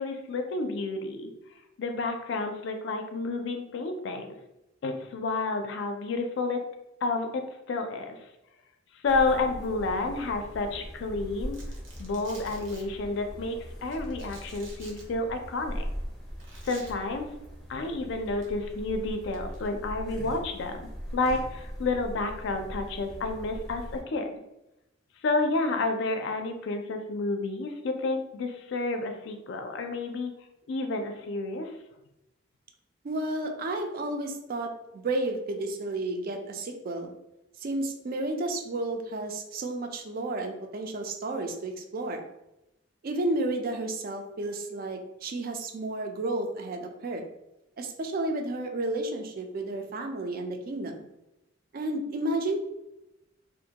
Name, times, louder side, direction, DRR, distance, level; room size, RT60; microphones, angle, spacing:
voice 1, 0.0-1.3 1.8-4.4 4.8-6.6 7.0-8.2 9.0-11.6 12.0-15.8 16.6-17.3 17.7-24.3 25.2-30.3 30.7-31.7, left 3 dB, 65° left, 5 dB, 0.4 m, -30 dB
sound 1, 9.1-24.0, equal, ahead, 0.5 m, -40 dB
Domestic sounds home sounds, 11.5-12.8 13.9-15.0 16.4-16.9 18.3-18.5 19.3-19.7, right 3 dB, 70° right, 0.7 m, -49 dB
voice 2, 33.0-37.1 37.6-42.2 43.0-47.3 47.8-51.0 51.7-52.6, right 2 dB, 50° right, 4 dB, 0.4 m, -32 dB
2.5 x 2.2 x 2.8 m, 0.91 s
head